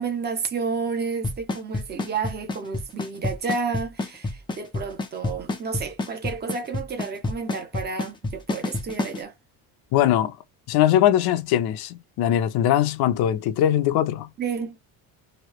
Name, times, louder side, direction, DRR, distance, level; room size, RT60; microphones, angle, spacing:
voice 1, 0.0-9.3 14.4-14.8, right 5 dB, 25° right, 0.7 m, -31 dB
Drum kit / Snare drum / Bass drum, 1.2-9.2, left 2 dB, 10° left, 0.4 m, -27 dB
voice 2, 9.9-10.4 10.7-14.3, left 11 dB, 65° left, 0.7 m, -21 dB
3.1 x 2.7 x 3.0 m
cardioid pair, 175°, 41 cm